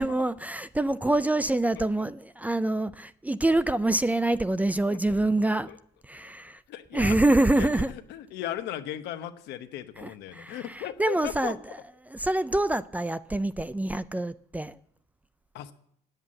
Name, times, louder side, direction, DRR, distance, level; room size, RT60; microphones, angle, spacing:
voice 1, 0.0-5.7 6.0-6.6 6.9-7.9 10.0-11.6 12.1-14.8, right 2 dB, 10° right, 0.4 m, -26 dB
voice 2, 6.7-11.6 15.5-15.7, left 12 dB, 80° left, 0.9 m, -37 dB
9.3 x 8.1 x 8.7 m
cardioid pair, 110°, 17 cm